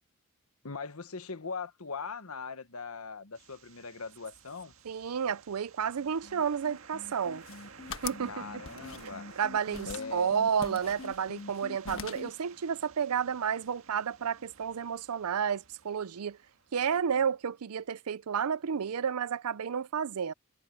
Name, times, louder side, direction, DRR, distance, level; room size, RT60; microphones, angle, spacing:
voice 1, 0.6-4.7 8.3-9.3 9.8-10.4, left 5 dB, 80° left, 1.3 m, -40 dB
sound 1, 3.3-17.2, right 5 dB, 70° right, 1.8 m, -54 dB
voice 2, 4.8-7.4 8.0-8.5 9.4-16.4 16.7-20.3, right 7 dB, 90° right, 0.5 m, -31 dB
sound 2, 6.0-12.3, left 3 dB, 45° left, 0.6 m, -45 dB
sound 3, 7.3-8.3 8.7-9.4 9.7-10.1 10.6-11.6 11.8-12.4, left 6 dB, 65° left, 1.5 m, -43 dB
head